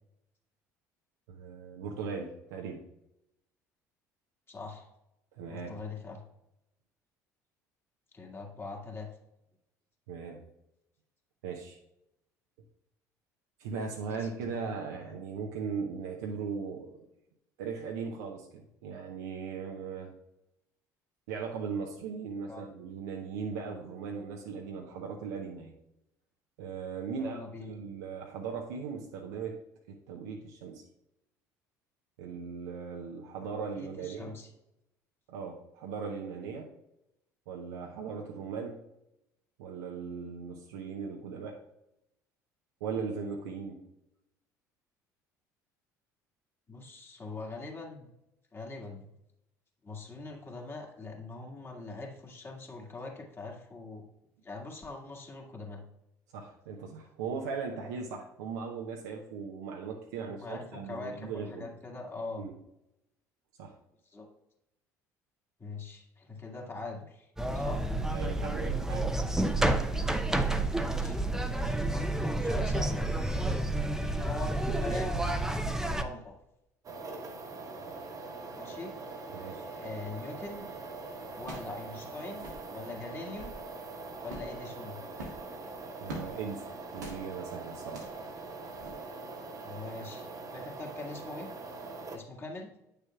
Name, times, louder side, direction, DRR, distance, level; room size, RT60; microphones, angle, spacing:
voice 1, 1.3-2.8 5.3-5.8 10.1-10.4 11.4-11.8 13.6-17.1 17.6-20.1 21.3-25.7 26.6-27.4 27.7-29.6 29.9-30.8 32.2-34.4 35.3-36.7 37.5-38.8 39.6-41.6 42.8-43.8 56.3-61.7 62.4-62.5 63.6-63.8 68.1-69.2 74.3-74.4 79.3-79.7 86.0-88.1, right 5 dB, 75° right, 1 dB, 0.7 m, -38 dB
voice 2, 4.5-4.9 5.5-6.2 8.1-9.1 14.1-14.5 22.5-22.7 27.2-27.7 33.4-34.5 46.7-48.1 48.5-49.1 49.8-54.0 54.4-55.8 60.2-62.4 64.1-64.3 65.6-67.8 71.0-71.2 71.5-73.1 74.0-75.2 75.8-76.4 78.6-78.9 79.8-80.7 81.3-83.6 84.2-85.0 89.6-91.5 92.1-92.7, left 3 dB, 25° left, 0 dB, 1.9 m, -42 dB
sound 1, 67.4-76.0, right 2 dB, 5° right, 0.7 m, -30 dB
sound 2, 76.8-92.2, right 3 dB, 40° right, 1.2 m, -43 dB
sound 3, 80.5-80.7 81.4-81.8 82.0-82.1 82.3-82.7 83.2-83.6 84.2-84.6 85.1-86.3 86.9-87.2 87.8-88.2 88.7-88.9, right 1 dB, 90° right, 1.5 m, -44 dB
9.1 x 6.7 x 2.3 m, 0.87 s
hypercardioid pair, 60°, 9 cm